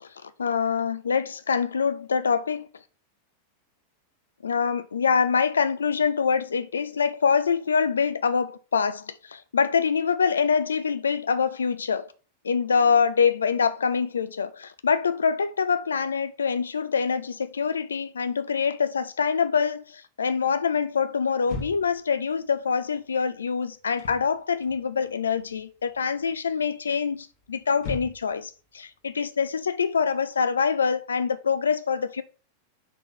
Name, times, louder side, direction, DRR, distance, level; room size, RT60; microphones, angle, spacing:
voice 1, 0.0-2.7 4.4-12.1 12.4-32.2, left 6 dB, 70° left, 0.4 m, -25 dB
sound 1, 21.4-22.1 23.8-24.3 24.6-25.6 25.9-26.3 26.9-28.4, left 2 dB, 50° left, 1.8 m, -37 dB
4.6 x 4.0 x 5.3 m
figure-of-eight pair, 90°, 0 cm